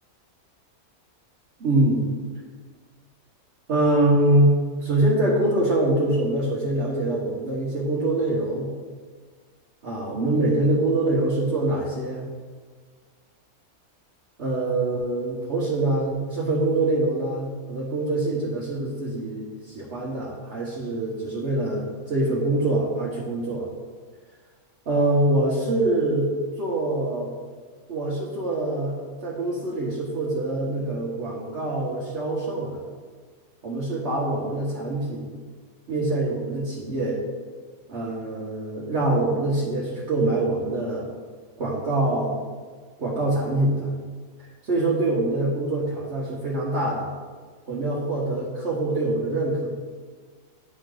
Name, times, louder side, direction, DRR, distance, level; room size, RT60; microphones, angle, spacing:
voice 1, 1.6-2.0 3.7-8.7 9.8-12.2 14.4-23.7 24.9-26.3 26.6-27.3 27.9-32.8 33.6-35.4 35.9-37.2 37.9-41.1 41.6-42.3 43.0-43.9 44.6-47.1 47.7-49.7, right 2 dB, 50° right, -6 dB, 1.3 m, -24 dB
10.0 x 4.5 x 3.8 m, 1.5 s
omnidirectional pair, 1.6 m